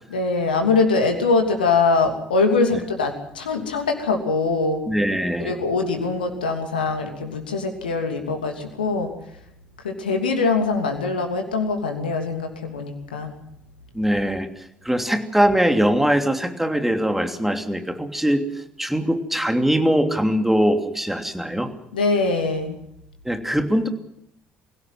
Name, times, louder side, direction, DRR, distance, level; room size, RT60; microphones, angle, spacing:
voice 1, 0.1-4.8 5.4-9.1 9.8-13.3 21.9-22.8, left 4 dB, 80° left, 4 dB, 2.9 m, -22 dB
voice 2, 4.9-5.5 13.9-21.7 23.2-23.9, equal, 5° right, 6 dB, 3.0 m, -22 dB
24.0 x 17.0 x 7.8 m, 0.79 s
figure-of-eight pair, 50°, 5 cm